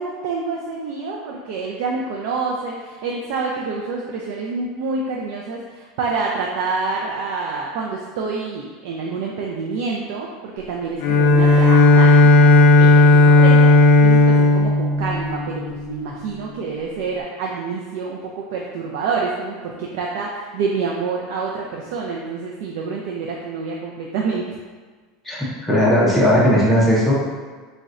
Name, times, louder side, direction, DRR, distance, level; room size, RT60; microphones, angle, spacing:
voice 1, 0.0-24.4, right 4 dB, 65° right, -2 dB, 0.3 m, -27 dB
Bowed string instrument, 11.0-16.1, left 2 dB, 65° left, 0.4 m, -13 dB
voice 2, 25.2-27.1, equal, ahead, -8 dB, 0.4 m, -17 dB
3.8 x 2.1 x 2.4 m, 1.4 s
supercardioid pair, 165°, 0 cm